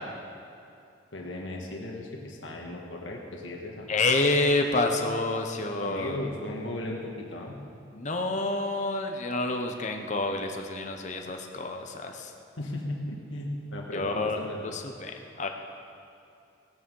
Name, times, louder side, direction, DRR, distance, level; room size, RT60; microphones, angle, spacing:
voice 1, 1.1-3.9 5.8-7.6 12.6-14.8, left 1 dB, 85° left, 0 dB, 1.6 m, -36 dB
voice 2, 3.9-6.2 7.9-12.3 13.9-15.5, left 2 dB, 40° left, 4 dB, 0.9 m, -28 dB
17.0 x 9.1 x 5.5 m, 2.5 s
head